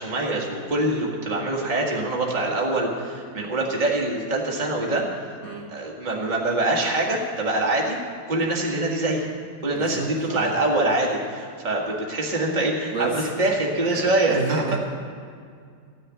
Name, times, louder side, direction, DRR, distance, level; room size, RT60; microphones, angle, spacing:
voice 1, 0.0-5.4 5.7-8.0 8.3-9.3 9.6-14.7, right 2 dB, 25° right, -2 dB, 1.8 m, -24 dB
voice 2, 9.9-10.5 12.9-13.3 14.3-14.8, right 4 dB, 50° right, -4 dB, 1.9 m, -29 dB
14.5 x 6.7 x 9.2 m, 2.2 s
omnidirectional pair, 2.0 m